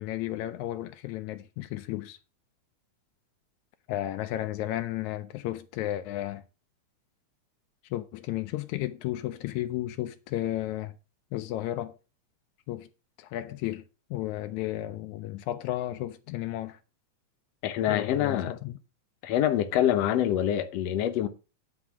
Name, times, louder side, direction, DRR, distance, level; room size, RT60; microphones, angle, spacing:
voice 1, 0.0-2.2 3.9-6.4 7.9-10.9 11.3-11.9 12.7-12.9 13.2-13.8 14.1-16.8 17.9-18.8, left 14 dB, 85° left, 2.0 m, -33 dB
voice 2, 17.6-18.5 19.2-21.3, left 11 dB, 70° left, 2.0 m, -25 dB
10.5 x 4.7 x 6.1 m
omnidirectional pair, 3.3 m